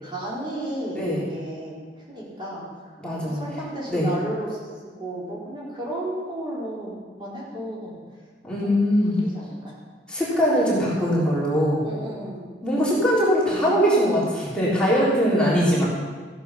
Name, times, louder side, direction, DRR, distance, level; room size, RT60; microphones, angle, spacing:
voice 1, 0.0-2.9 3.3-4.7 5.0-7.9 8.6-8.8 9.3-9.8 11.8-12.4, right 1 dB, 30° right, -6 dB, 3.8 m, -33 dB
voice 2, 3.0-3.4 3.9-4.1 8.4-9.2 10.1-11.8 12.6-15.9, equal, 5° left, -8 dB, 3.6 m, -21 dB
15.5 x 8.3 x 5.8 m, 1.5 s
head